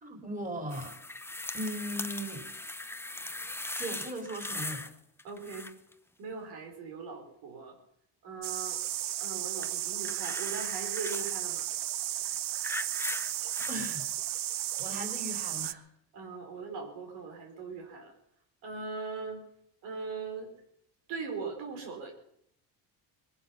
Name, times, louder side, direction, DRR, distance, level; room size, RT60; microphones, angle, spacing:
voice 1, 0.0-1.0 1.5-2.5 3.8-4.9 13.7-14.1 14.5-15.8, right 1 dB, 20° right, 3 dB, 4.0 m, -38 dB
sound 1, 0.7-4.9 5.2-5.9 9.6-11.4 12.2-13.9 14.8-14.9, left 2 dB, 5° left, 0.7 m, -39 dB
voice 2, 5.2-5.7 6.2-7.8 8.2-8.8 9.2-11.7 16.1-18.1 18.6-19.4 19.8-20.5 21.1-22.1, right 4 dB, 90° right, 2 dB, 4.4 m, -40 dB
sound 2, 8.4-15.7, right 13 dB, 50° right, 0.6 m, -34 dB
21.0 x 11.5 x 5.8 m, 0.71 s
cardioid pair, 95°, 45 cm